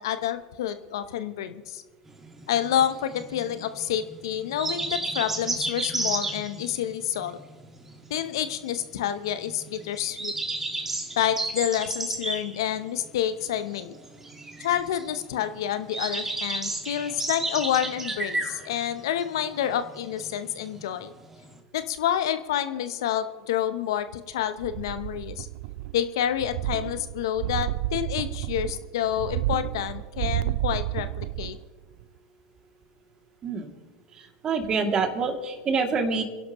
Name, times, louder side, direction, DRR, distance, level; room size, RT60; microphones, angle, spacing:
voice 1, 0.0-1.8 2.5-7.4 8.1-10.3 11.2-13.9 14.6-21.1 21.7-25.5 25.9-31.6, left 10 dB, 75° left, 11 dB, 0.8 m, -28 dB
sound 1, 2.1-21.6, right 2 dB, 15° right, 1.9 m, -33 dB
sound 2, 24.6-26.1 26.3-31.6 32.0-32.1, right 17 dB, 65° right, 0.4 m, -31 dB
voice 2, 34.1-36.2, right 4 dB, 35° right, 3 dB, 2.6 m, -26 dB
29.0 x 11.5 x 3.1 m, 1.4 s
hypercardioid pair, 95°, 2 cm